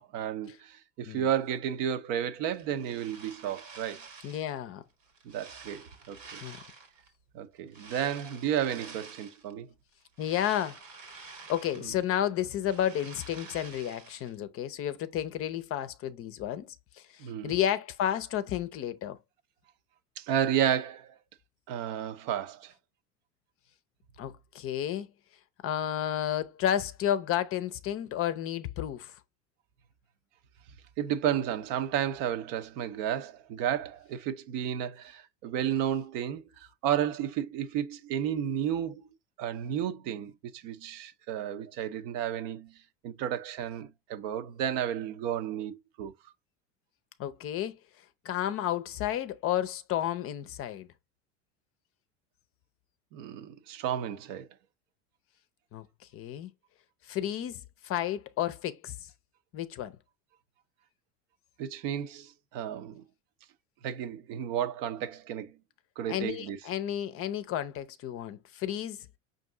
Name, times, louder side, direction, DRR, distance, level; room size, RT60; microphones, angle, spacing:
voice 1, 0.0-4.1 5.3-6.4 7.3-9.7 17.2-17.5 20.2-21.1 21.7-22.7 31.0-39.0 39.4-42.7 43.0-46.1 53.1-54.5 61.6-63.0 63.8-65.5 66.0-66.6, right 10 dB, 55° right, 0.7 m, -32 dB
sound 1, 2.5-4.6 5.0-7.1 7.7-9.5 9.9-12.2 12.4-14.4, right 4 dB, 90° right, 1.5 m, -49 dB
voice 2, 4.2-4.8 6.4-6.6 10.2-11.2 11.5-19.2 24.2-25.1 25.6-29.2 47.2-47.8 48.2-50.9 55.7-55.9 56.1-56.5 57.1-59.1 59.5-59.9 66.1-69.1, left 11 dB, 35° left, 0.6 m, -32 dB
5.2 x 2.6 x 3.7 m
hypercardioid pair, 90°, 37 cm